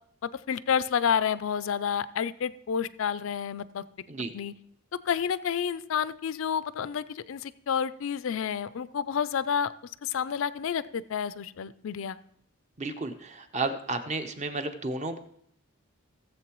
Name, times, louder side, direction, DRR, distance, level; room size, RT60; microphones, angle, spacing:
voice 1, 0.2-3.8 4.3-4.5 5.1-9.7 10.0-12.2, left 7 dB, 60° left, 16 dB, 0.4 m, -29 dB
voice 2, 12.8-15.2, right 3 dB, 30° right, 8 dB, 0.7 m, -32 dB
17.5 x 7.6 x 3.0 m, 0.71 s
head